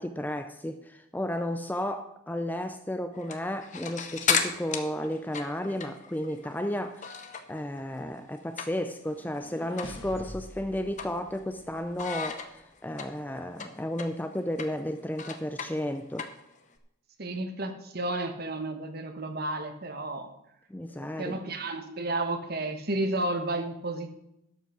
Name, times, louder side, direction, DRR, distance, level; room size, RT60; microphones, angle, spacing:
voice 1, 0.0-7.2 7.5-16.3 20.7-21.4, left 1 dB, 10° left, 0.4 m, -33 dB
sound 1, 3.1-7.6 7.9-9.1 9.4-9.5 9.8-10.0 10.4-11.6 12.0-16.8, left 6 dB, 35° left, 0.9 m, -34 dB
sound 2, 9.0-12.1, left 1 dB, 60° left, 1.5 m, -46 dB
voice 2, 17.2-20.3 21.0-24.1, right 2 dB, 50° right, 1.2 m, -32 dB
12.0 x 5.8 x 6.2 m
head